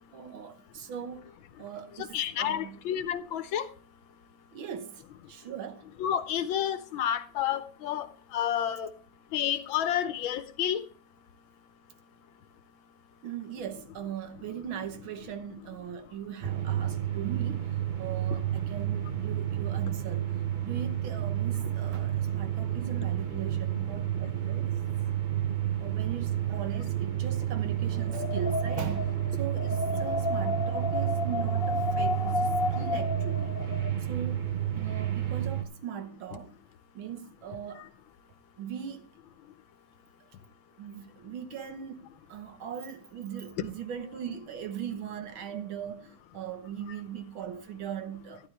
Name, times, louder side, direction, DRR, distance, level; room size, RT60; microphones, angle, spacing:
voice 1, 0.1-1.3 1.6-2.9 4.5-5.0 5.3-5.9 13.2-20.3 20.6-24.7 25.8-33.6 34.1-34.4 34.7-36.6 36.9-37.9 38.6-39.1 40.8-48.5, right 8 dB, 70° right, 1.8 m, -39 dB
voice 2, 2.1-3.7 6.0-8.1 8.3-8.9 9.3-10.8, left 10 dB, 75° left, 1.5 m, -30 dB
sound 1, 16.4-35.6, right 11 dB, 40° right, 0.6 m, -30 dB
Wind, 27.9-33.9, left 3 dB, 35° left, 1.3 m, -32 dB
12.0 x 11.0 x 3.3 m
omnidirectional pair, 2.3 m